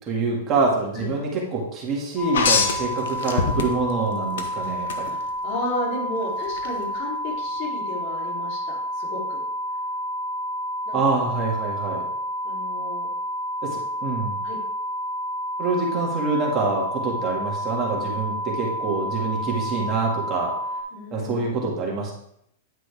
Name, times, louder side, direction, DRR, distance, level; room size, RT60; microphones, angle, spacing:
voice 1, 0.1-5.2 10.9-12.1 13.6-14.4 15.6-20.6 21.1-22.1, right 3 dB, 30° right, -2 dB, 2.0 m, -26 dB
sound 1, 2.2-20.8, equal, 5° left, 2.4 m, -30 dB
sound 2, 2.3-4.0 4.4-5.0 6.6-6.7, left 5 dB, 80° left, 1.1 m, -23 dB
voice 2, 5.0-9.4 10.8-11.3 12.4-13.1 14.4-14.6 20.9-21.6, left 1 dB, 50° left, -3 dB, 3.3 m, -33 dB
10.0 x 6.0 x 3.5 m, 0.73 s
hypercardioid pair, 140°, 0 cm